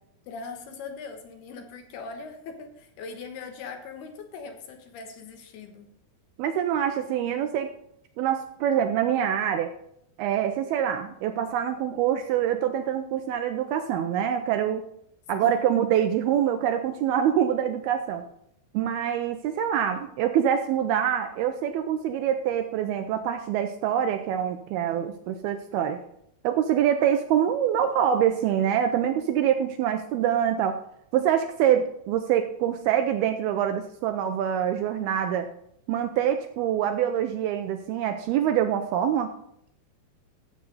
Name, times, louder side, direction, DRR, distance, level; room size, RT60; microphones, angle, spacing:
voice 1, 0.3-5.9 15.4-15.8, left 4 dB, 70° left, 5 dB, 3.1 m, -41 dB
voice 2, 6.4-7.7 8.2-9.7 10.2-14.8 15.3-18.2 18.7-26.0 26.4-30.8 31.1-35.5 35.9-39.3, right 9 dB, 80° right, 7 dB, 2.3 m, -25 dB
14.0 x 7.6 x 4.1 m, 0.72 s
omnidirectional pair, 5.0 m